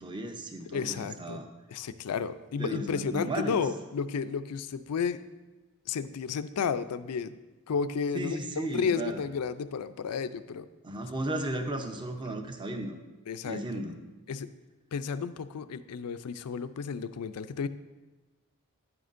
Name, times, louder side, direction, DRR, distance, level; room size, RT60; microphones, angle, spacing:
voice 1, 0.0-1.5 2.6-3.6 8.1-9.2 10.8-13.0 13.4-14.0, right 1 dB, 20° right, 5 dB, 0.7 m, -35 dB
voice 2, 0.7-1.4 1.7-5.2 5.9-7.3 7.7-10.7 13.3-13.6 14.3-14.5 14.9-17.7, left 6 dB, 85° left, 12 dB, 0.4 m, -32 dB
9.9 x 9.4 x 2.5 m, 1.2 s
head